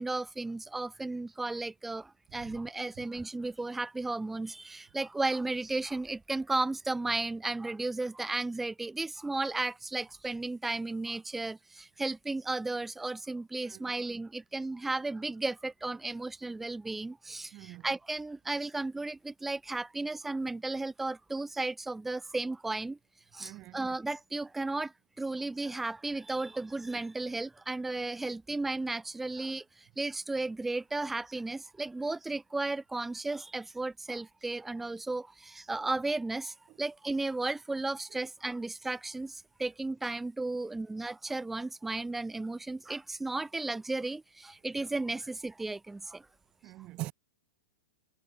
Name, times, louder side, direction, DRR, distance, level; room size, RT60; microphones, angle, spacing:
voice 1, 0.0-23.0 23.3-24.9 25.2-29.6 30.0-39.3 39.6-46.2, right 2 dB, 5° right, 5.5 m, -34 dB
voice 2, 13.6-14.0 17.5-17.9 23.4-23.8 36.7-36.8 38.1-38.2 46.6-47.1, right 18 dB, 35° right, 3.0 m, -43 dB
hypercardioid pair, 120°, 3 cm